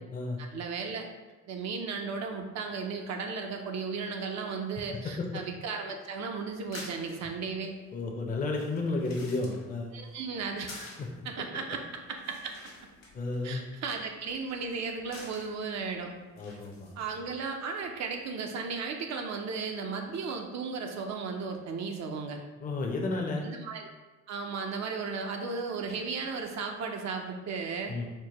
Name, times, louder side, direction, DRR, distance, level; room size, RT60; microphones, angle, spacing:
voice 1, 0.4-1.1 1.5-7.7 9.9-10.9 11.2-12.7 13.4-16.1 17.0-22.4 23.4-23.9 24.3-27.9, right 5 dB, 65° right, 3 dB, 0.5 m, -35 dB
sound 1, 6.5-17.3, left 2 dB, 60° left, 1.1 m, -51 dB
voice 2, 7.9-9.9 11.0-11.1 13.1-13.6 16.4-16.9 22.6-23.5 27.9-28.1, left 3 dB, 30° left, 0 dB, 0.5 m, -32 dB
4.5 x 2.1 x 2.9 m, 1.2 s
cardioid pair, 90°, 30 cm